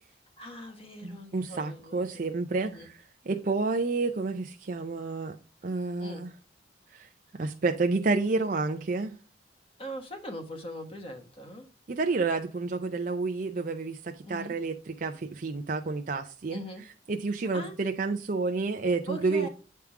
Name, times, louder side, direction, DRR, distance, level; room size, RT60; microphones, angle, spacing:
voice 1, 0.4-2.2 2.6-2.9 6.0-6.3 9.8-11.7 14.2-14.6 16.5-16.8 17.5-17.7 19.1-19.5, right 1 dB, 30° left, 1.3 m, -41 dB
voice 2, 1.0-3.0 3.3-5.4 5.6-6.3 6.9-9.1 11.9-16.6 17.1-19.5, right 3 dB, 45° right, 0.5 m, -30 dB
8.5 x 3.6 x 4.7 m
head